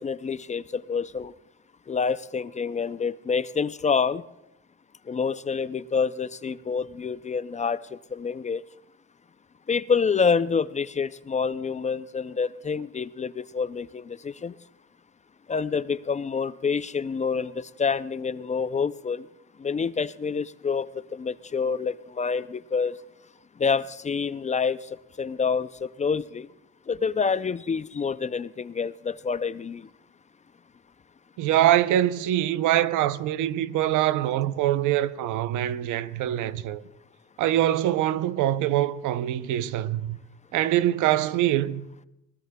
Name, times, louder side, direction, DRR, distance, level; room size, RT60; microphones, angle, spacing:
voice 1, 0.0-1.3 1.9-4.2 5.1-8.6 9.7-14.5 15.5-19.3 19.6-23.0 23.6-24.8 25.2-26.5 26.9-29.9, left 5 dB, 25° left, 0.4 m, -27 dB
voice 2, 31.4-36.8 37.4-40.2 40.5-41.9, right 12 dB, 90° right, 0.6 m, -24 dB
21.5 x 18.5 x 2.2 m
cardioid pair, 90°, 30 cm